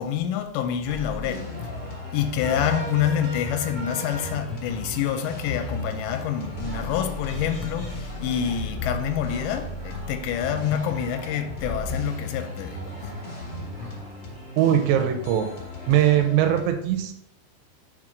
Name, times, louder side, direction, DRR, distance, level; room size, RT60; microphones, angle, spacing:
voice 1, 0.0-1.5 2.1-13.1, left 9 dB, 90° left, 2.8 m, -27 dB
sound 1, 0.6-16.6, left 2 dB, 55° left, 1.3 m, -39 dB
sound 2, 0.8-16.2, right 1 dB, 35° right, 0.9 m, -43 dB
sound 3, 1.6-14.0, left 2 dB, 70° left, 1.7 m, -36 dB
voice 2, 14.6-15.5 15.9-17.1, right 11 dB, 80° right, 2.7 m, -20 dB
6.1 x 4.4 x 5.0 m
omnidirectional pair, 5.0 m